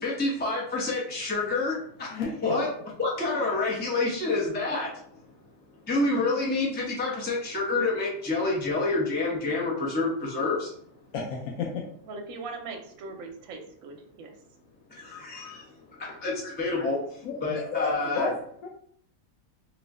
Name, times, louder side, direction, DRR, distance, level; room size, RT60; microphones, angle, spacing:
voice 1, 0.0-5.1 5.9-10.7 14.9-15.7 16.0-18.3, left 3 dB, 10° left, -4 dB, 0.5 m, -28 dB
voice 2, 11.1-11.8 16.4-16.5 17.2-18.7, left 4 dB, 90° left, -1 dB, 1.1 m, -32 dB
voice 3, 12.0-14.4, right 3 dB, 75° right, 3 dB, 1.0 m, -40 dB
3.1 x 2.1 x 3.5 m, 0.63 s
omnidirectional pair, 1.5 m